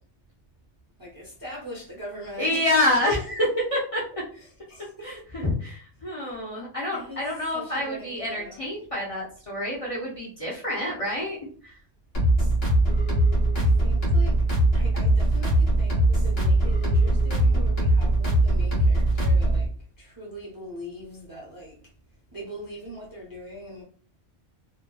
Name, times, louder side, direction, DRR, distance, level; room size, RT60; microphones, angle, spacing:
voice 1, 1.0-3.2 4.3-5.2 6.9-8.8 13.5-14.5 14.7-19.7 20.0-21.8 22.3-23.8, equal, 30° right, 0.4 m, -41 dB
voice 2, 2.4-3.2 3.7-4.2 5.0-11.4 11.6-11.7, left 1 dB, 40° left, 0.6 m, -27 dB
sound 1, 12.1-19.7, right 1 dB, 55° left, 1.3 m, -21 dB
2.8 x 2.2 x 2.2 m
omnidirectional pair, 1.2 m